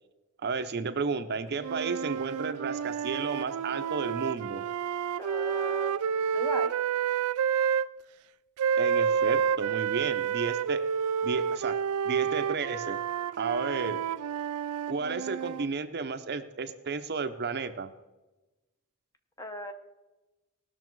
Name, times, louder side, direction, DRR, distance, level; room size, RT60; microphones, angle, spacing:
voice 1, 0.4-4.6 8.8-10.8 11.2-11.8 12.0-13.0 13.4-14.0 14.9-17.9, right 4 dB, 50° right, 9 dB, 0.7 m, -32 dB
sound 1, 1.6-7.9 8.6-15.7, right 7 dB, 85° right, 0.4 m, -29 dB
voice 2, 5.2-6.1 6.3-6.8 19.4-19.7, equal, 15° left, 6 dB, 0.9 m, -37 dB
18.0 x 6.4 x 4.6 m, 1.1 s
head